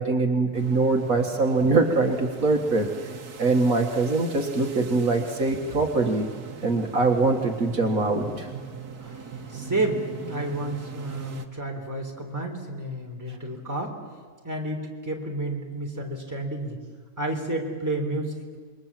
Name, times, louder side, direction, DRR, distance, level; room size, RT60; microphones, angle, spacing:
voice 1, 0.0-2.9 3.4-6.3 6.6-8.5, right 3 dB, 65° right, 3 dB, 2.0 m, -23 dB
sound 1, 0.5-11.5, right 5 dB, 90° right, 1.8 m, -40 dB
voice 2, 9.5-14.0 14.4-16.8 17.2-18.3, right 2 dB, 10° right, 1 dB, 3.5 m, -30 dB
27.5 x 22.5 x 7.5 m, 1.5 s
omnidirectional pair, 1.6 m